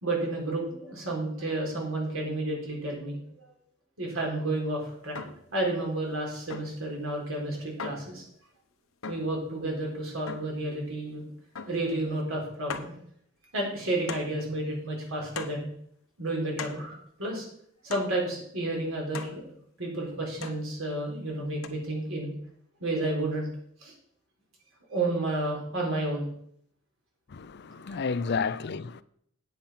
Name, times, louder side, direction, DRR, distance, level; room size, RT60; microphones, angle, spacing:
voice 1, 0.0-3.2 4.0-5.2 5.5-8.2 9.1-11.2 11.6-12.9 13.5-15.7 16.2-17.4 17.8-19.5 19.8-22.3 22.8-23.5 23.8-23.9 24.9-26.3 27.9-28.0, right 2 dB, 75° right, 4.1 m, -31 dB
sound 1, 5.2-5.5 6.5-6.9 7.8-8.2 9.0-9.4 10.3-10.6 11.6-11.9 12.2-12.3 12.7-13.0 14.1-14.4 15.4-15.7 16.6-16.9 17.9-18.2 19.1-19.4 20.4-20.7 21.6-21.7, left 5 dB, 75° left, 1.0 m, -39 dB
voice 2, 27.3-29.0, left 5 dB, 55° left, 0.5 m, -31 dB
9.0 x 8.6 x 5.8 m
head